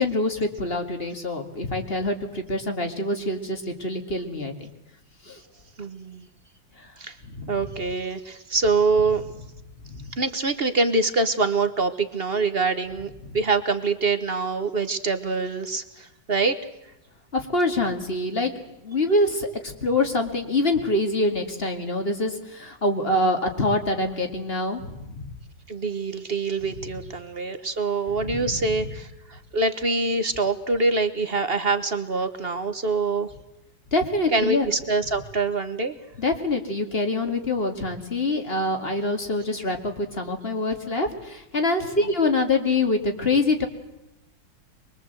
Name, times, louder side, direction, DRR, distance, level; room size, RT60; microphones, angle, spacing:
voice 1, 0.0-4.7 5.2-5.4 6.8-6.9 7.2-7.6 9.8-10.1 17.3-18.5 18.8-25.3 28.2-28.6 33.9-34.7 36.2-43.7, left 2 dB, 30° left, 5 dB, 2.3 m, -25 dB
voice 2, 5.8-6.3 7.0-7.2 7.5-9.2 10.2-16.6 25.7-33.3 34.3-36.0 42.0-42.1, right 3 dB, 35° right, 10 dB, 1.2 m, -25 dB
24.0 x 22.0 x 8.0 m, 0.89 s
omnidirectional pair, 2.0 m